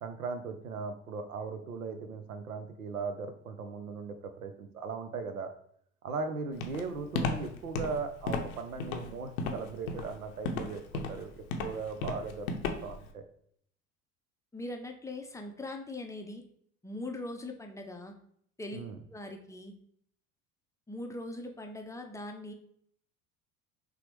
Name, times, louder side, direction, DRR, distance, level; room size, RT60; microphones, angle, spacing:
voice 1, 0.0-5.5 6.0-13.2 18.7-19.0, right 4 dB, 90° right, 8 dB, 0.5 m, -38 dB
Walk footsteps, 6.6-13.1, left 3 dB, 75° left, 0.6 m, -34 dB
voice 2, 14.5-16.4 16.8-18.1 18.6-18.8 19.1-19.7 20.9-22.5, left 2 dB, 10° left, 3 dB, 0.5 m, -41 dB
5.8 x 2.1 x 3.1 m, 0.65 s
figure-of-eight pair, 65°, 42 cm